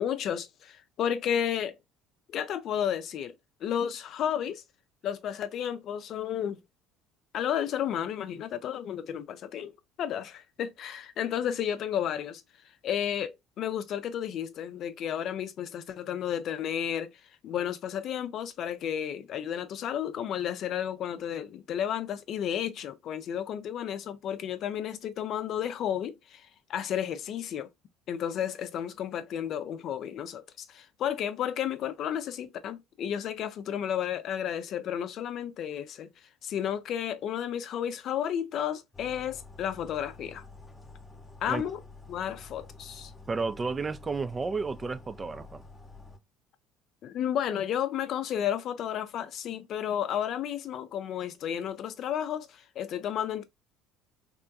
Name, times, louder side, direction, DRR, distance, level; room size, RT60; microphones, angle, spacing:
voice 1, 0.0-1.8 2.3-3.3 3.6-4.6 5.0-6.6 7.3-9.7 10.0-12.4 12.8-17.1 17.4-27.7 28.1-36.1 36.4-40.4 41.4-41.8 42.1-43.1 47.0-53.4, left 9 dB, 50° left, 0.4 m, -32 dB
sound 1, 38.9-46.2, left 3 dB, 15° left, 0.7 m, -49 dB
voice 2, 43.3-45.6, right 4 dB, 25° right, 0.3 m, -32 dB
3.6 x 2.2 x 2.5 m
hypercardioid pair, 60°, 0 cm